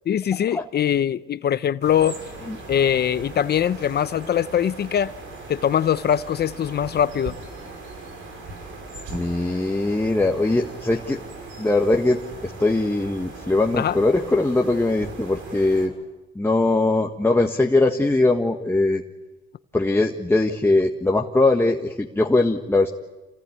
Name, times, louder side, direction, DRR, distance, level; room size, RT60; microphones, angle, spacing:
voice 1, 0.1-2.2 2.7-5.1 5.5-7.3 13.7-14.0, left 9 dB, 55° left, 0.8 m, -22 dB
sound 1, 1.8-15.9, right 3 dB, 85° right, 6.2 m, -39 dB
voice 2, 9.1-11.2 11.6-15.9 16.3-19.0 19.7-22.9, left 2 dB, 10° left, 1.5 m, -21 dB
28.0 x 19.0 x 9.5 m
cardioid pair, 90°, 20 cm